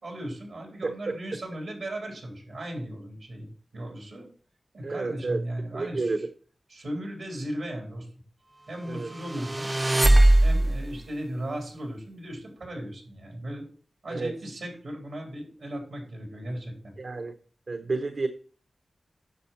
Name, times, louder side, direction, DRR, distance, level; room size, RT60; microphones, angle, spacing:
voice 1, 0.0-4.3 4.7-6.2 6.7-8.1 8.7-9.7 10.4-13.6 14.0-16.9, right 1 dB, 90° right, 1 dB, 3.5 m, -37 dB
voice 2, 0.8-1.1 4.8-5.4 5.7-6.3 8.9-9.1 14.1-14.3 17.0-17.3 17.7-18.3, right 3 dB, 70° right, 8 dB, 0.7 m, -30 dB
sound 1, 9.2-10.9, right 1 dB, 30° right, 0.3 m, -20 dB
10.0 x 6.3 x 4.2 m, 0.43 s
cardioid pair, 50°, 0 cm